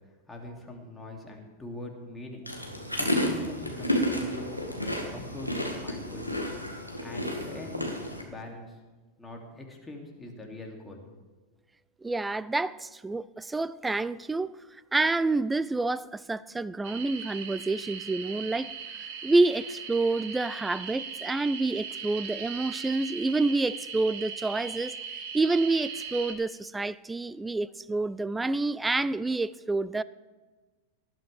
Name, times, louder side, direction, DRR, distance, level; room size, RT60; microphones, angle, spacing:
voice 1, 0.3-2.5 2.8-6.4 7.0-7.9 8.2-8.8 9.2-11.0, left 1 dB, 10° left, 2.7 m, -42 dB
sound 1, 2.5-8.2, equal, 90° left, 1.8 m, -31 dB
voice 2, 12.0-14.5 14.9-18.7 19.2-30.0, right 3 dB, 10° right, 0.3 m, -28 dB
sound 2, 16.8-26.3, right 6 dB, 45° right, 1.8 m, -39 dB
18.5 x 12.0 x 3.5 m
figure-of-eight pair, 90°, 0 cm